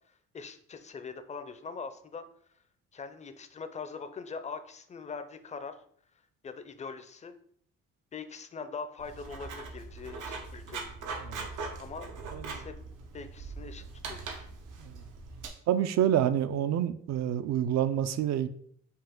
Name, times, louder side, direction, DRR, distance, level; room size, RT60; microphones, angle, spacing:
voice 1, 0.1-2.3 2.9-5.8 6.4-7.3 8.1-10.9 11.8-12.1 12.5-12.8 13.1-14.5, left 5 dB, 25° left, 0.5 m, -42 dB
Writing, 9.0-15.5, right 4 dB, 85° right, 0.9 m, -41 dB
voice 2, 12.3-12.7 14.8-15.0 15.7-18.5, right 10 dB, 60° right, 0.5 m, -28 dB
5.5 x 2.5 x 3.7 m
cardioid pair, 90°, 30 cm